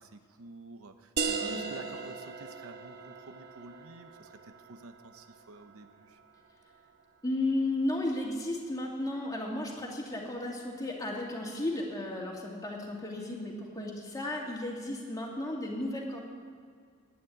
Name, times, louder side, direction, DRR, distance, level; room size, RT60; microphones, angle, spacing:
voice 1, 0.0-6.2, right 3 dB, 70° right, 8 dB, 0.8 m, -50 dB
sound 1, 1.2-6.5, right 5 dB, 45° right, 0.8 m, -38 dB
voice 2, 7.2-16.2, left 1 dB, 15° left, -1 dB, 2.2 m, -34 dB
11.0 x 9.4 x 9.4 m, 2.1 s
head